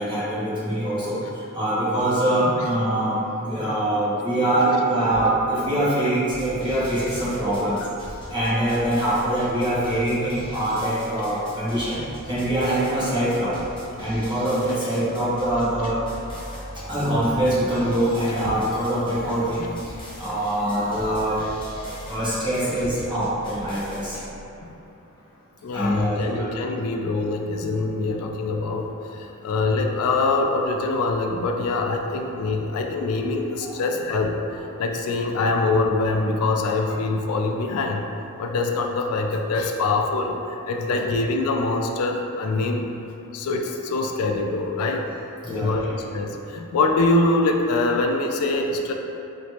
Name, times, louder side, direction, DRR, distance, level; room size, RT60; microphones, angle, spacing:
voice 1, 0.0-7.8 8.3-13.6 14.0-16.0 16.9-21.4 21.7-24.2 25.7-26.5 31.8-31.9 32.4-32.8 33.6-33.8 40.9-41.0 45.4-46.0, right 1 dB, 20° right, -11 dB, 1.0 m, -24 dB
sound 1, 6.3-24.3, equal, 20° left, 0.7 m, -40 dB
voice 2, 25.6-34.4 34.8-38.1 38.4-42.9 43.3-45.0 45.5-48.9, left 3 dB, 70° left, 3 dB, 0.3 m, -24 dB
3.1 x 3.0 x 2.8 m, 2.8 s
head